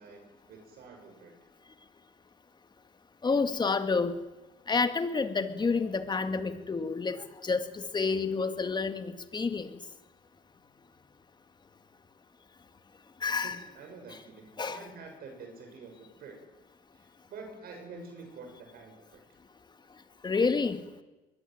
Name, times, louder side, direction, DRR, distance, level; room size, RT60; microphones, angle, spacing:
voice 1, 0.0-1.4 13.4-16.4 16.9-19.2, right 4 dB, 65° right, 3 dB, 6.5 m, -48 dB
voice 2, 3.2-4.2 4.7-9.8 13.2-13.6 14.6-14.9 20.2-20.8, left 4 dB, 25° left, 9 dB, 2.2 m, -29 dB
22.5 x 21.0 x 9.2 m, 1.1 s
cardioid pair, 110°, 17 cm